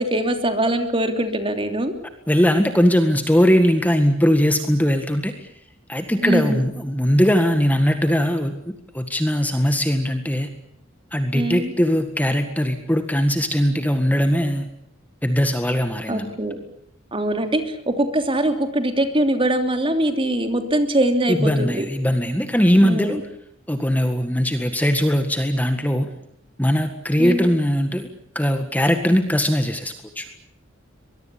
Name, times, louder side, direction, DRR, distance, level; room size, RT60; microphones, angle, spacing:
voice 1, 0.0-1.9 6.2-6.6 11.3-11.7 16.1-16.6 17.1-21.8 22.8-23.2 27.2-27.5, right 1 dB, 25° right, 6 dB, 3.0 m, -22 dB
voice 2, 2.3-5.5 5.9-8.5 8.9-10.5 11.1-14.7 15.2-16.3 21.3-23.2 23.7-26.1 26.6-28.1 28.4-30.3, equal, 10° left, 7 dB, 1.8 m, -20 dB
23.5 x 22.0 x 8.6 m, 0.71 s
head